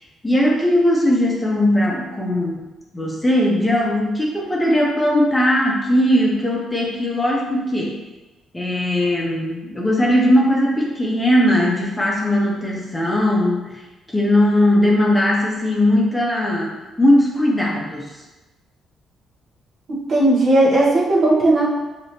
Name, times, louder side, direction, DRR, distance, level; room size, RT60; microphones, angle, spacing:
voice 1, 0.2-2.7 2.9-8.0 8.5-13.8 14.1-18.1, left 1 dB, 15° left, -3 dB, 0.8 m, -19 dB
voice 2, 20.1-21.7, right 2 dB, 50° right, -4 dB, 1.1 m, -16 dB
4.9 x 3.0 x 2.8 m, 1.1 s
cardioid pair, 90°, 0 cm